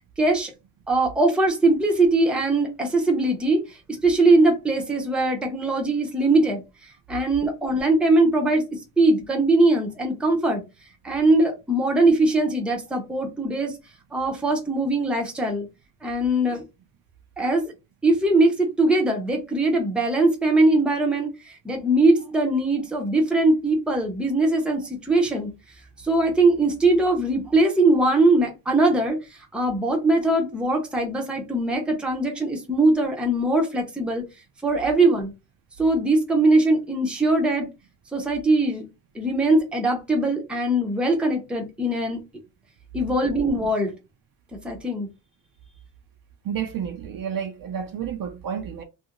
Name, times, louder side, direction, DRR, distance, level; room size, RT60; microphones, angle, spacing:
voice 1, 0.2-0.5 0.9-3.6 3.9-6.6 7.1-10.6 11.0-13.8 14.1-15.7 16.0-16.6 17.4-17.7 18.0-25.5 26.0-29.2 29.5-34.2 34.6-35.3 35.8-37.7 38.1-38.8 39.1-42.2 42.9-43.9 44.6-45.1, right 2 dB, ahead, 0.6 m, -21 dB
voice 2, 46.4-48.8, right 8 dB, 50° right, 0.5 m, -30 dB
2.7 x 2.6 x 2.8 m
cardioid pair, 155°, 46 cm